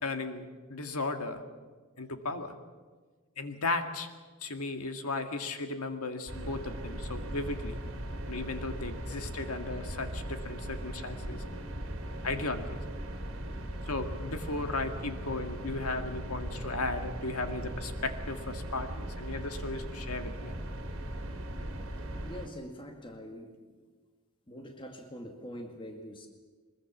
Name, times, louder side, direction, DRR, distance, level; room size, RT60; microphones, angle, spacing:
voice 1, 0.0-1.4 2.0-2.5 3.4-4.1 4.4-7.8 8.3-11.7 12.2-12.8 13.9-20.5, left 3 dB, 80° left, 7 dB, 2.0 m, -36 dB
sound 1, 6.3-22.5, right 1 dB, 60° right, 3.0 m, -39 dB
voice 2, 22.2-23.8 24.5-26.3, equal, 25° left, 4 dB, 2.0 m, -44 dB
22.5 x 21.0 x 7.2 m, 1.4 s
head